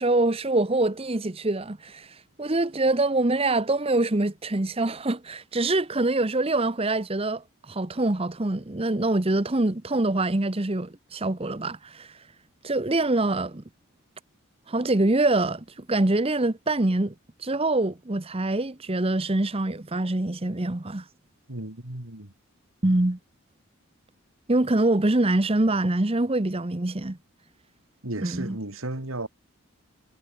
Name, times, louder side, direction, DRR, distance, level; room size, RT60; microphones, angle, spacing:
voice 1, 0.0-2.1 2.4-12.1 12.6-13.6 14.7-17.1 17.4-21.0 22.8-23.2 24.5-27.2 28.2-28.6, right 2 dB, 25° right, 0.9 m, -24 dB
voice 2, 21.5-22.3 28.0-29.3, right 2 dB, 75° right, 3.1 m, -34 dB
head